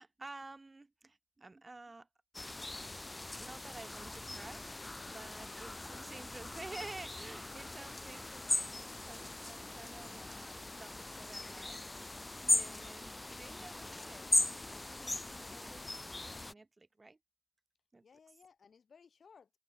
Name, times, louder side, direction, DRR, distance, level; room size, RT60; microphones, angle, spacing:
voice 1, 0.0-2.1 3.3-4.6 5.0-12.1 12.5-17.2 17.9-18.0, right 3 dB, 15° right, 2.0 m, -52 dB
sound 1, 2.3-16.5, left 2 dB, 10° left, 0.3 m, -38 dB
voice 2, 5.4-6.1 18.0-19.6, left 6 dB, 35° left, 2.7 m, -62 dB
cardioid pair, 150°, 0 cm